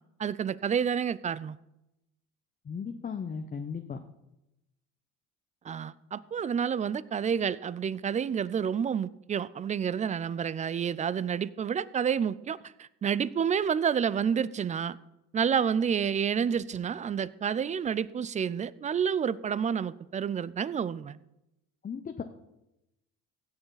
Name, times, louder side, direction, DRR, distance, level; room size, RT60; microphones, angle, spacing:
voice 1, 0.2-1.6 5.6-15.0 15.3-21.2, right 7 dB, 25° right, 0.4 m, -29 dB
voice 2, 2.6-4.0 21.8-22.2, left 6 dB, 25° left, 0.8 m, -36 dB
16.5 x 7.0 x 4.0 m
supercardioid pair, 85°, 32 cm